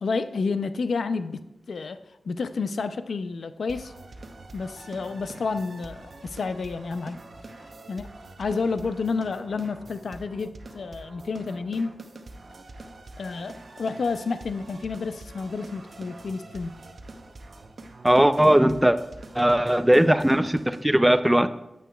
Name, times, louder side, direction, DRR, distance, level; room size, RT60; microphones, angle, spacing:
voice 1, 0.0-1.4 1.7-3.9 4.5-7.2 7.6-8.1 8.4-12.0 13.2-16.8, left 4 dB, 85° left, 11 dB, 0.4 m, -30 dB
sound 1, 3.7-20.8, right 2 dB, 60° right, 0.7 m, -45 dB
voice 2, 18.0-19.0 19.3-21.5, right 1 dB, 10° right, 11 dB, 0.4 m, -19 dB
9.0 x 8.5 x 2.3 m, 0.91 s
wide cardioid pair, 85°, 0 cm